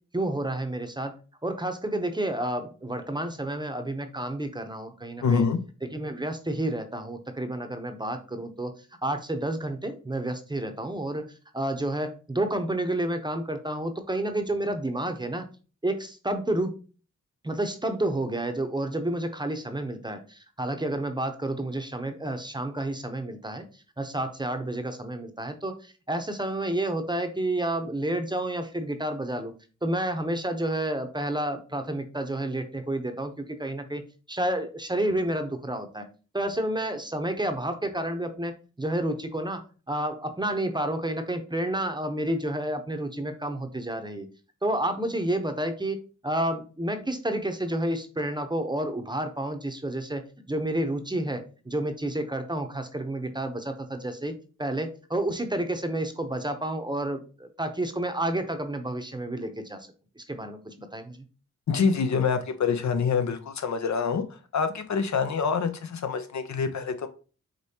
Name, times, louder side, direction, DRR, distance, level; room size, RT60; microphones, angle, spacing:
voice 1, 0.1-5.4 5.9-8.7 9.0-11.3 11.5-15.5 15.8-16.7 17.4-23.7 24.0-29.5 29.8-34.0 34.3-36.0 36.3-44.3 44.6-50.2 50.5-54.3 54.6-59.9 60.2-61.3, right 1 dB, 15° right, 6 dB, 0.7 m, -30 dB
voice 2, 5.2-5.6 61.7-67.1, left 5 dB, 65° left, 8 dB, 0.6 m, -26 dB
5.1 x 3.1 x 2.8 m, 0.36 s
cardioid pair, 60°, 30 cm